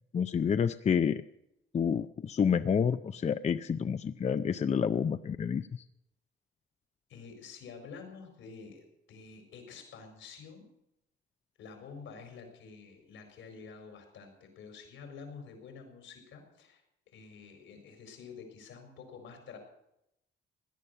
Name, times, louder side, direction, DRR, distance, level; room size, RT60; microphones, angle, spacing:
voice 1, 0.1-1.2 1.7-5.7, left 7 dB, 35° left, 11 dB, 0.5 m, -29 dB
voice 2, 7.1-10.7 11.6-16.8 17.1-19.6, left 5 dB, 80° left, 4 dB, 4.6 m, -49 dB
17.0 x 11.0 x 6.7 m, 0.81 s
cardioid pair, 90°, 20 cm